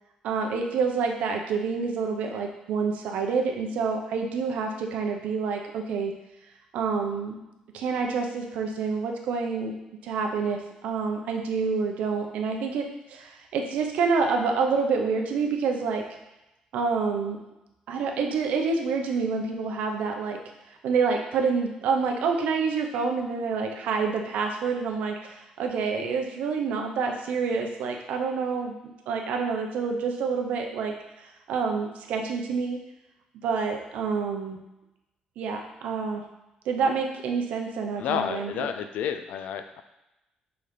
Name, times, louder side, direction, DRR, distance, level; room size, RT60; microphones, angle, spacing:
voice 1, 0.2-6.1 6.7-7.4 7.7-9.7 10.0-16.0 16.7-17.4 17.9-20.4 20.8-28.8 29.1-32.8 33.4-34.6 35.4-36.2 36.6-38.7, right 5 dB, 80° right, 2 dB, 0.9 m, -27 dB
voice 2, 38.0-39.8, left 8 dB, 80° left, 8 dB, 0.5 m, -30 dB
5.6 x 4.1 x 5.1 m, 0.95 s
cardioid pair, 155°, 2 cm